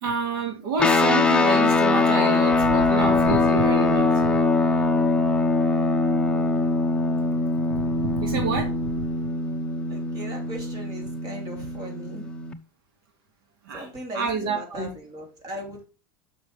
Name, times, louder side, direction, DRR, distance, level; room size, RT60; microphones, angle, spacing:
voice 1, 0.0-4.4 7.7-9.0 13.6-13.9 14.1-14.9, right 4 dB, 75° right, 3 dB, 2.3 m, -28 dB
sound 1, 0.8-12.5, left 3 dB, 10° left, 0.8 m, -22 dB
voice 2, 5.7-6.1 9.9-12.3 13.7-15.8, equal, 35° right, 2 dB, 3.6 m, -39 dB
6.8 x 6.2 x 5.1 m, 0.32 s
supercardioid pair, 130°, 12 cm